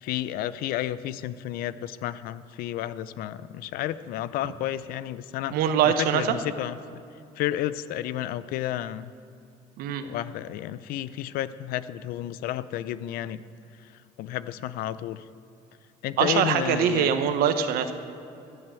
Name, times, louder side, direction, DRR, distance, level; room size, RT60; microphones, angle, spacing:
voice 1, 0.0-5.5 5.8-7.0 7.4-9.1 10.0-13.4 14.2-15.2 16.0-17.1, left 12 dB, 75° left, 16 dB, 0.6 m, -31 dB
voice 2, 5.5-6.3 9.8-10.0 16.2-17.9, right 8 dB, 75° right, 9 dB, 1.1 m, -23 dB
15.0 x 8.0 x 7.6 m, 2.7 s
supercardioid pair, 95°, 15 cm